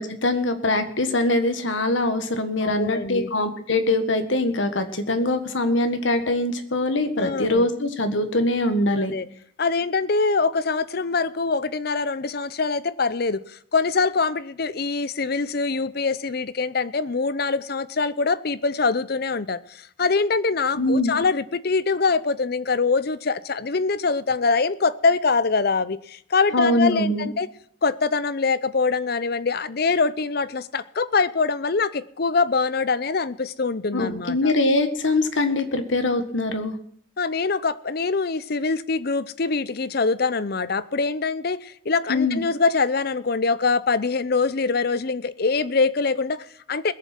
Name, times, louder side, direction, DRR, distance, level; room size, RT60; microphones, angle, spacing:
voice 1, 0.0-9.1 20.7-21.2 26.5-27.3 33.9-36.7 42.1-42.4, left 2 dB, 70° left, 1.6 m, -23 dB
voice 2, 2.6-3.3 7.2-7.7 9.0-9.3 9.6-19.6 20.0-27.5 27.8-34.5 37.2-46.9, left 4 dB, 50° left, 0.6 m, -24 dB
20.5 x 7.3 x 6.0 m
head